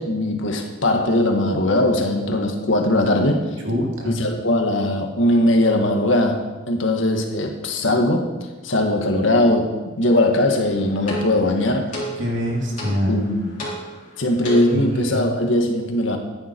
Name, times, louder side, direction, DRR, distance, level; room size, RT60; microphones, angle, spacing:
voice 1, 0.0-3.4 4.0-8.3 8.6-11.9 13.1-13.6 14.2-16.2, left 1 dB, 80° left, 3 dB, 1.7 m, -20 dB
voice 2, 3.6-4.2 12.2-13.2 14.7-15.2, equal, 75° right, 0 dB, 2.8 m, -24 dB
sound 1, 10.4-15.0, right 1 dB, 40° left, 3.9 m, -34 dB
14.5 x 9.7 x 4.6 m, 1.2 s
head